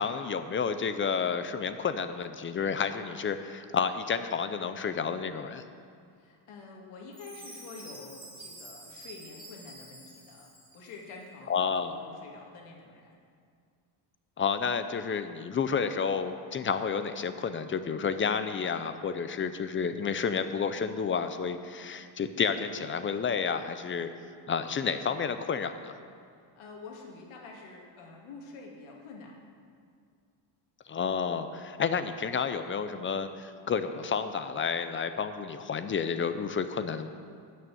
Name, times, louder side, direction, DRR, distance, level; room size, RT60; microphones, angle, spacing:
voice 1, 0.0-5.6 11.5-12.0 14.4-24.1 24.5-25.9 30.9-37.1, left 6 dB, 25° left, 10 dB, 0.4 m, -30 dB
voice 2, 6.1-13.2 16.5-16.6 26.4-29.4, left 4 dB, 85° left, 0 dB, 2.5 m, -48 dB
Chime, 7.1-11.1, right 2 dB, 10° right, 2.2 m, -48 dB
13.0 x 6.3 x 9.0 m, 2.2 s
cardioid pair, 155°, 48 cm